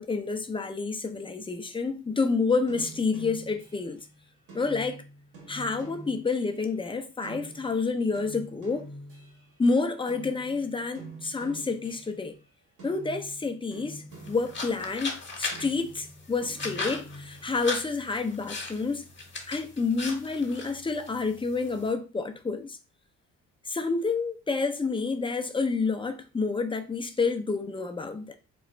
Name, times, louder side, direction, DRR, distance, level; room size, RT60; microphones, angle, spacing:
voice 1, 0.0-4.0 4.5-5.0 5.5-8.9 9.6-12.3 12.8-19.1 19.5-22.8 23.7-28.3, left 4 dB, 15° left, 0.6 m, -29 dB
sound 1, 2.7-9.8 10.1-12.4 12.8-15.1 15.5-17.6, right 2 dB, 90° right, 1.6 m, -47 dB
sound 2, 14.1-21.9, left 3 dB, 40° left, 1.1 m, -38 dB
3.0 x 2.4 x 4.2 m
cardioid pair, 90°, 30 cm